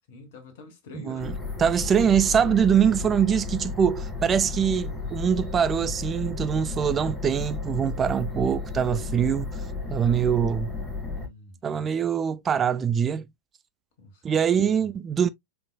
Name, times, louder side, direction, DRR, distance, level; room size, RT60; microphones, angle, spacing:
voice 1, 0.1-1.3 11.1-11.9 14.0-14.7, left 2 dB, 55° left, 1.3 m, -46 dB
voice 2, 1.1-9.6 9.9-10.7 11.6-13.2 14.2-15.3, right 8 dB, 20° right, 0.3 m, -23 dB
sound 1, 1.2-11.3, left 4 dB, 10° left, 1.8 m, -33 dB
4.5 x 3.8 x 2.2 m
figure-of-eight pair, 90°, 0 cm